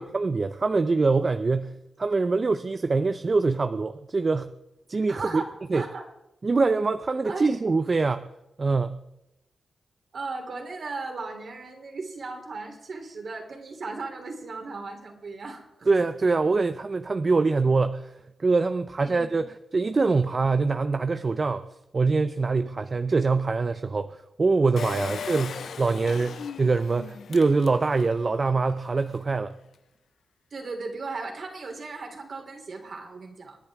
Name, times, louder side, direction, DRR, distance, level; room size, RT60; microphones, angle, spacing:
voice 1, 0.0-1.7 2.0-4.5 4.9-5.4 5.7-5.8 6.4-8.3 8.6-9.0 15.9-21.7 21.9-29.5, right 3 dB, 40° right, 10 dB, 0.6 m, -24 dB
voice 2, 4.9-6.0 7.2-7.6 10.1-15.9 19.0-19.2 25.0-25.2 30.5-33.6, right 3 dB, 60° right, 3 dB, 3.4 m, -36 dB
Engine, 24.8-28.2 28.7-28.8 29.0-29.1, left 7 dB, 80° left, 0.5 m, -37 dB
27.5 x 10.5 x 3.6 m, 0.93 s
cardioid pair, 80°, 0 cm